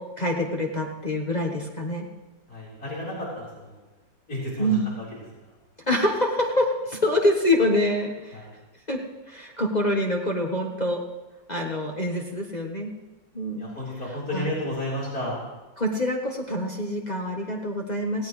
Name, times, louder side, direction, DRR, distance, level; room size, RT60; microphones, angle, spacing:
voice 1, 0.0-2.1 4.6-4.9 5.9-8.4 8.9-9.0 9.3-11.0 11.5-12.9 13.3-13.7 14.3-14.5 15.8-18.3, left 1 dB, 25° left, 0 dB, 1.1 m, -25 dB
voice 2, 2.5-3.8 4.3-5.1 8.3-8.5 13.6-15.4, left 1 dB, 50° left, -6 dB, 4.6 m, -32 dB
17.5 x 17.0 x 3.2 m, 1.2 s
omnidirectional pair, 2.0 m